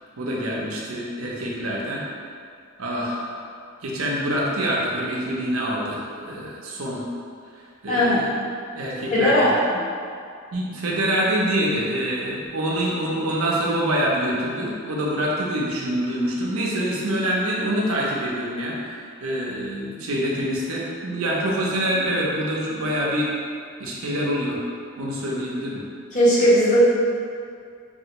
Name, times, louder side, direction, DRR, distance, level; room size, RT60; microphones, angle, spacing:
voice 1, 0.2-2.0 2.8-3.3 3.8-7.0 7.8-8.3 8.7-9.5 10.5-18.8 19.2-23.3 23.8-24.6 25.0-25.8, equal, 90° right, -4 dB, 0.6 m, -25 dB
voice 2, 7.9-8.2 9.1-9.6 26.1-26.8, equal, 35° left, -10 dB, 1.0 m, -18 dB
3.3 x 2.4 x 2.9 m, 2.3 s
head